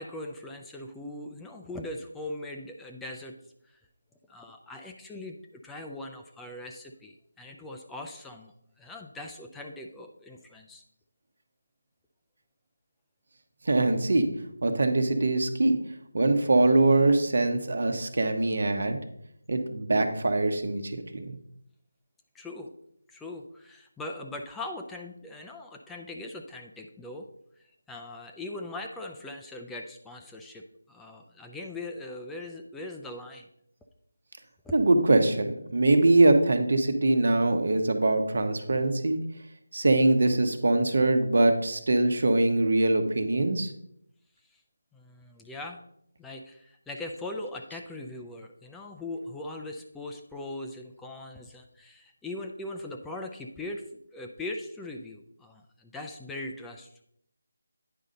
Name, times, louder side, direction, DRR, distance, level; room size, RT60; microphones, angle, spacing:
voice 1, 0.0-3.3 3.7-3.8 4.3-10.8 22.3-22.7 23.1-27.3 27.9-30.6 30.9-33.4 34.6-34.7 44.9-45.9 46.2-53.8 54.1-56.9, left 2 dB, 5° left, 2 dB, 0.4 m, -40 dB
voice 2, 13.7-14.3 14.6-15.8 16.1-19.0 19.5-21.3 34.7-39.2 39.7-43.7, right 2 dB, 65° right, 7 dB, 1.1 m, -23 dB
9.5 x 5.4 x 3.8 m, 0.72 s
figure-of-eight pair, 165°, 0 cm